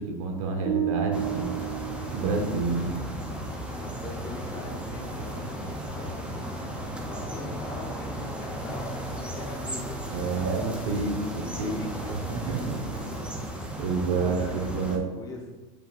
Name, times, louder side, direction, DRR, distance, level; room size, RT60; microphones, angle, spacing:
voice 1, 0.0-1.6 2.1-2.9 10.1-11.8 12.3-12.8 13.8-15.0, right 4 dB, 65° right, 3 dB, 1.3 m, -29 dB
sound 1, 0.7-2.8, right 10 dB, 35° right, 0.9 m, -31 dB
sound 2, 1.1-15.0, right 1 dB, 5° right, 0.6 m, -35 dB
voice 2, 2.7-3.4 3.8-6.7 7.0-13.4 14.1-15.5, left 2 dB, 20° left, -1 dB, 1.1 m, -42 dB
7.8 x 5.2 x 2.5 m, 1.2 s
supercardioid pair, 145°, 18 cm